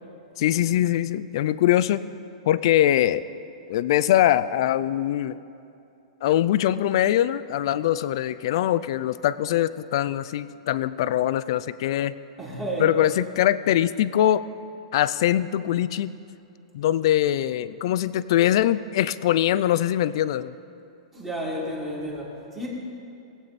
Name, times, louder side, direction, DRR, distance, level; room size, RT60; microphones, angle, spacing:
voice 1, 0.4-2.0 2.5-3.2 3.7-5.4 6.2-12.2 12.8-14.4 14.9-16.1 16.7-20.5, left 12 dB, 45° left, 15 dB, 0.4 m, -22 dB
voice 2, 12.4-12.9 21.1-22.7, equal, 10° right, -5 dB, 1.9 m, -31 dB
20.0 x 8.5 x 4.1 m, 2.7 s
supercardioid pair, 175°, 4 cm